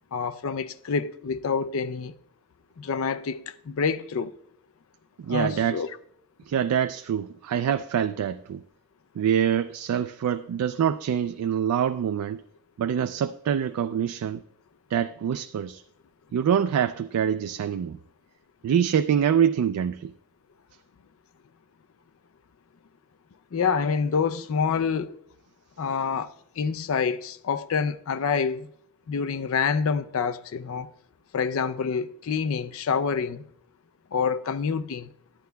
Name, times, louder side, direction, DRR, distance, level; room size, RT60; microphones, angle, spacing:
voice 1, 0.1-2.1 2.8-4.3 5.3-5.9 23.5-25.2 25.8-28.7 29.1-30.9 31.3-33.4 34.1-35.1, left 6 dB, 65° left, 0.4 m, -27 dB
voice 2, 5.2-5.8 6.5-8.6 9.2-12.4 12.8-14.4 14.9-15.8 16.3-18.0 18.6-20.1, right 8 dB, 85° right, 0.3 m, -25 dB
11.5 x 9.3 x 2.2 m
head